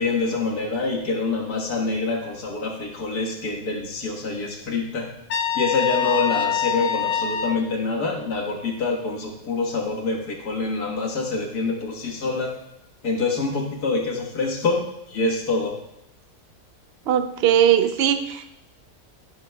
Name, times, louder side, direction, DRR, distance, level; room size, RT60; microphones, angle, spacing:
voice 1, 0.0-5.1 5.6-12.6 13.0-15.8, left 3 dB, 90° left, 0 dB, 2.0 m, -26 dB
Trumpet, 5.3-7.6, left 8 dB, 55° left, 0.7 m, -25 dB
voice 2, 17.1-18.5, right 10 dB, 60° right, 9 dB, 0.7 m, -20 dB
13.5 x 9.8 x 2.3 m, 0.84 s
omnidirectional pair, 1.6 m